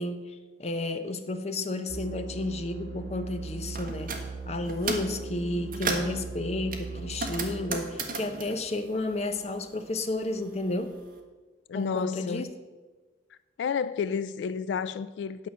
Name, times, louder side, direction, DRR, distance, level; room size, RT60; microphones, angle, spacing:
voice 1, 0.0-4.1 4.5-10.9 11.7-12.5, left 2 dB, 35° left, 0.7 m, -32 dB
sound 1, 1.9-9.4, right 4 dB, 70° right, 1.4 m, -40 dB
sound 2, 3.7-4.2 4.6-5.1 5.5-6.2 6.7-9.6 9.9-11.0, right 3 dB, 50° right, 1.3 m, -35 dB
voice 2, 11.7-12.6 13.6-15.5, left 6 dB, 75° left, 0.3 m, -31 dB
9.5 x 5.7 x 7.5 m
head